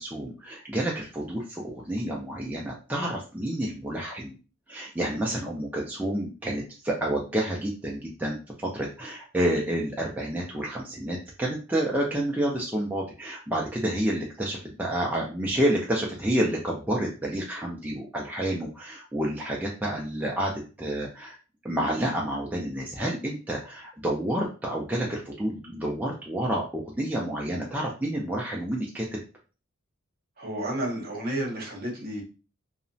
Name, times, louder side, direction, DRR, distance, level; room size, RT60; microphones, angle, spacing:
voice 1, 0.0-4.3 4.7-21.4 21.6-29.1, right 1 dB, 10° right, -3 dB, 0.3 m, -29 dB
voice 2, 30.4-32.2, right 1 dB, 45° right, 0 dB, 0.8 m, -31 dB
2.8 x 2.0 x 2.6 m, 0.34 s
head